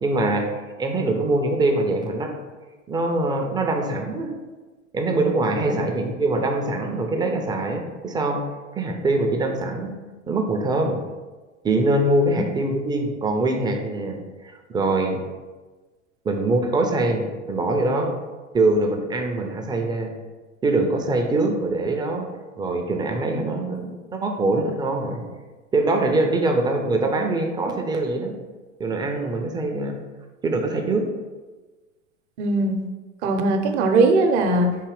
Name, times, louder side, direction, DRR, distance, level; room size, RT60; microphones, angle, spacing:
voice 1, 0.0-2.3 2.9-4.3 4.9-8.4 8.7-9.9 10.3-11.0 11.6-15.2 16.2-18.1 18.5-20.1 20.6-22.3 22.6-25.2 25.7-28.3 28.8-30.0 30.4-31.1, right 2 dB, 10° right, 3 dB, 0.4 m, -23 dB
voice 2, 32.4-32.8 33.2-34.8, right 2 dB, 60° right, 5 dB, 0.7 m, -20 dB
3.8 x 2.7 x 4.7 m, 1.3 s
hypercardioid pair, 90°, 38 cm